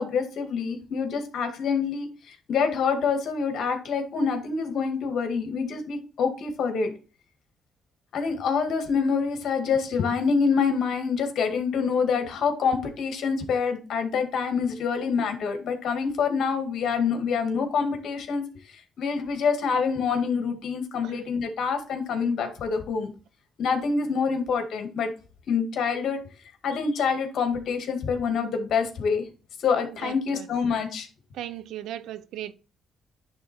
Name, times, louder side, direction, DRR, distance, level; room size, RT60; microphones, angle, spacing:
voice 1, 0.0-6.9 8.1-18.4 19.0-23.1 23.6-25.1 25.5-26.2 26.6-29.2 29.6-31.1, left 5 dB, 70° left, 2.0 m, -26 dB
voice 2, 30.0-30.5 31.3-32.5, right 12 dB, 85° right, 0.6 m, -37 dB
10.5 x 3.6 x 4.5 m
cardioid pair, 90°, 0 cm